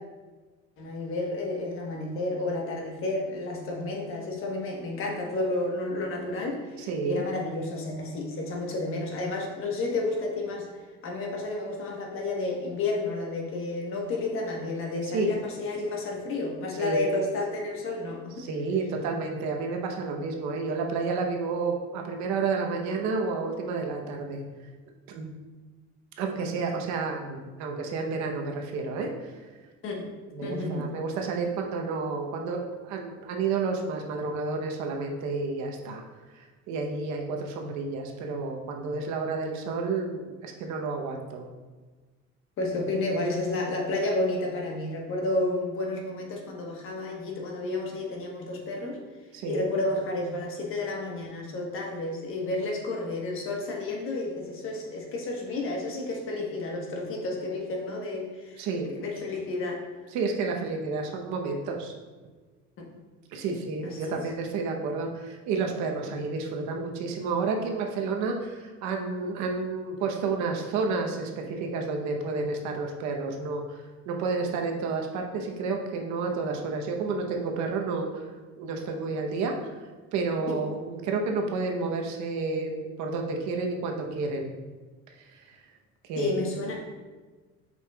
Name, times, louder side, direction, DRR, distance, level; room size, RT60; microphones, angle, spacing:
voice 1, 0.8-10.7 11.0-18.5 26.7-26.8 29.8-30.1 30.4-30.9 42.6-49.0 49.5-58.6 58.9-59.8 62.8-62.9 63.5-63.6 63.8-64.3 86.2-86.8, left 2 dB, 45° left, 0 dB, 1.2 m, -31 dB
voice 2, 6.8-7.2 15.1-15.3 16.8-17.1 18.4-24.4 25.1-25.3 26.2-29.4 30.3-36.0 36.3-41.5 49.3-49.6 58.6-58.9 60.1-61.9 63.3-78.3 78.6-79.6 80.1-84.5 85.2-85.6 86.0-86.3, right 4 dB, 70° right, 2 dB, 0.9 m, -30 dB
7.4 x 5.5 x 2.3 m, 1.3 s
cardioid pair, 160°, 30 cm